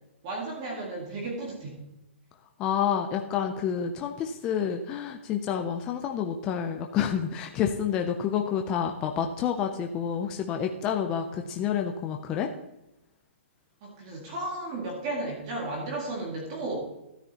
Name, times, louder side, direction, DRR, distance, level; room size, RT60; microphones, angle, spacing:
voice 1, 0.2-1.8 11.4-11.5 13.8-16.8, right 2 dB, 25° right, -2 dB, 2.0 m, -34 dB
voice 2, 2.6-12.5, left 8 dB, 10° left, 4 dB, 0.3 m, -29 dB
13.0 x 9.4 x 2.8 m, 0.91 s
hypercardioid pair, 180°, 7 cm